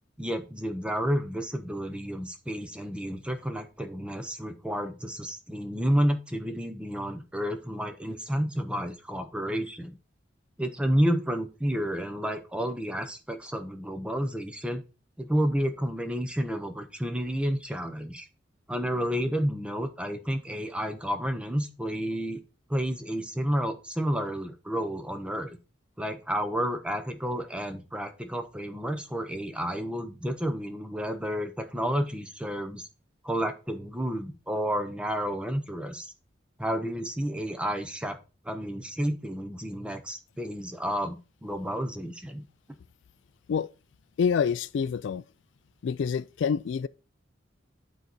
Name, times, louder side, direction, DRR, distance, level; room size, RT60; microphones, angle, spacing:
voice 1, 0.2-9.9 10.6-14.8 15.2-18.3 18.7-22.4 22.7-25.6 26.0-32.8 33.2-36.1 36.6-38.2 38.4-42.4, equal, 5° right, 0.7 m, -30 dB
voice 2, 44.2-45.2 45.8-46.9, left 6 dB, 70° left, 0.3 m, -27 dB
8.8 x 4.1 x 4.5 m
head